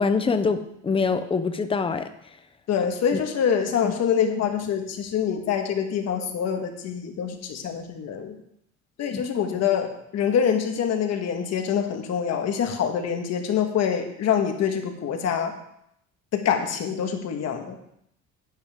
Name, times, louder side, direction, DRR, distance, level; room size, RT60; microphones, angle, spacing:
voice 1, 0.0-2.1 3.1-3.2 3.8-3.9 9.1-9.2, left 4 dB, 20° left, 9 dB, 0.6 m, -24 dB
voice 2, 2.7-8.4 9.0-15.5 16.3-17.8, left 8 dB, 55° left, 4 dB, 1.5 m, -25 dB
11.0 x 9.8 x 3.6 m, 0.75 s
cardioid pair, 165°, 30 cm